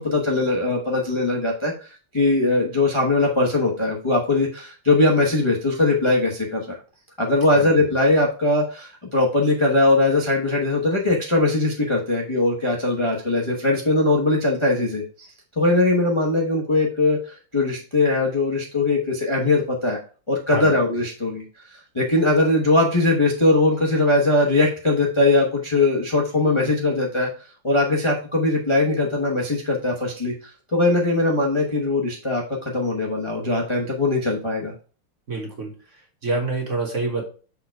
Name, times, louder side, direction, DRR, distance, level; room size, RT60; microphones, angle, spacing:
voice 1, 0.0-6.8 7.2-15.3 15.6-20.0 20.3-21.4 21.7-27.3 27.6-34.7, left 2 dB, 25° left, -3 dB, 0.7 m, -21 dB
voice 2, 35.3-35.7 36.2-37.2, right 3 dB, 40° right, 0 dB, 1.5 m, -26 dB
6.5 x 3.7 x 4.6 m, 0.37 s
omnidirectional pair, 2.4 m